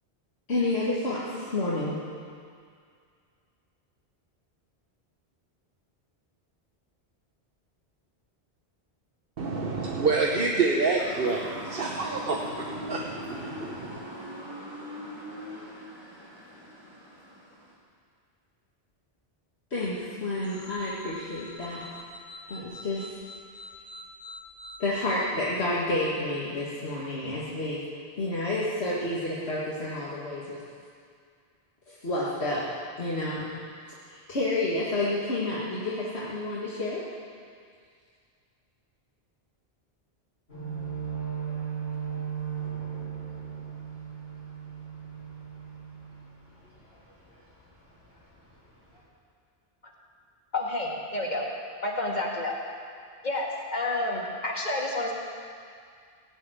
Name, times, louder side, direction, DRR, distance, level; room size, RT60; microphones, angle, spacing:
voice 1, 0.5-2.0 19.7-21.9 22.5-23.1 24.8-27.8 28.2-30.6 31.9-32.6 33.0-33.5 34.3-37.0, left 2 dB, 80° left, -8 dB, 2.3 m, -29 dB
voice 2, 9.4-14.0, right 4 dB, 60° right, 0 dB, 1.2 m, -28 dB
Motor vehicle (road) / Siren, 11.0-17.7, left 1 dB, 25° right, 2.7 m, -41 dB
sound 1, 20.4-25.3, left 1 dB, 5° left, 2.7 m, -46 dB
sound 2, 40.5-47.0 47.3-47.6 48.0-48.5 48.9-49.0, right 7 dB, 65° left, 5.1 m, -36 dB
voice 3, 50.5-51.5 51.8-52.6 53.2-55.1, left 2 dB, 45° left, -2 dB, 2.2 m, -29 dB
17.0 x 7.4 x 9.3 m, 2.2 s
omnidirectional pair, 1.1 m